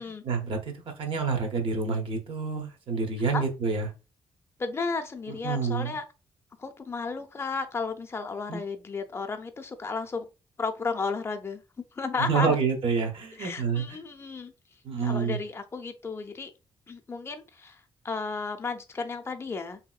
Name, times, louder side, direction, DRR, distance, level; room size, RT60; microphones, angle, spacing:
voice 1, 0.2-3.9 5.4-6.0 8.5-8.6 12.2-14.0 14.8-15.4, right 5 dB, 65° right, 0.7 m, -28 dB
voice 2, 4.6-6.0 6.6-10.3 10.6-11.6 11.9-12.6 13.4-14.5 15.0-16.5 16.9-19.8, left 4 dB, 25° left, 0.5 m, -33 dB
3.0 x 2.7 x 2.3 m
wide cardioid pair, 130°, 10 cm